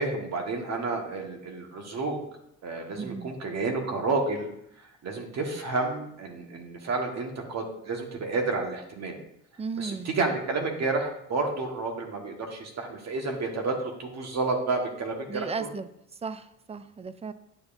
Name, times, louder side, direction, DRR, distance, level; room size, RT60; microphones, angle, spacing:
voice 1, 0.0-2.2 2.6-4.5 4.8-9.2 9.8-15.7, right 3 dB, 60° right, 2 dB, 1.6 m, -30 dB
voice 2, 3.0-3.3 9.6-10.1 15.3-15.9 16.2-17.3, right 5 dB, 20° right, 13 dB, 0.4 m, -35 dB
9.4 x 6.9 x 2.6 m, 0.76 s
cardioid pair, 90°, 30 cm